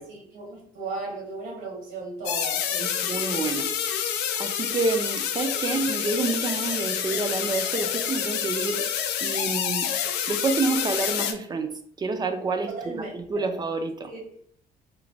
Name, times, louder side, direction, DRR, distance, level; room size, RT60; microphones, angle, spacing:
voice 1, 0.0-2.9 12.8-13.5 14.1-14.2, right 3 dB, 80° right, -2 dB, 1.1 m, -36 dB
sound 1, 2.3-11.3, left 9 dB, 80° left, 0.4 m, -28 dB
voice 2, 2.8-3.7 4.4-8.8 9.2-9.9 10.3-14.1, right 3 dB, 25° right, 7 dB, 0.3 m, -28 dB
3.0 x 2.1 x 2.5 m, 0.65 s
cardioid pair, 110°, 17 cm